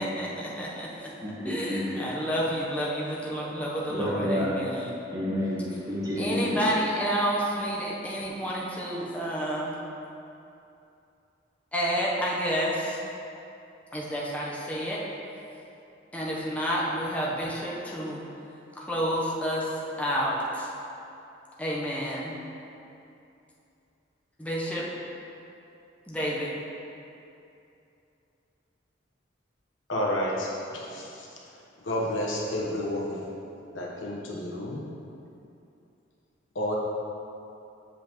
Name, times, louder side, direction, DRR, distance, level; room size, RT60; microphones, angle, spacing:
voice 1, 0.0-1.1 1.4-4.9 6.2-9.8 11.7-13.0 13.9-15.0 16.1-18.3 18.7-20.7 21.6-22.4 24.4-24.8 26.1-26.5, equal, 10° left, -5 dB, 0.8 m, -30 dB
voice 2, 1.2-1.8 3.9-4.5 5.1-6.6, equal, 20° right, -6 dB, 1.1 m, -29 dB
voice 3, 29.9-31.3 31.8-33.2 33.7-34.8 36.5-36.8, left 1 dB, 90° left, -4 dB, 1.1 m, -30 dB
7.4 x 5.2 x 3.0 m, 2.7 s
head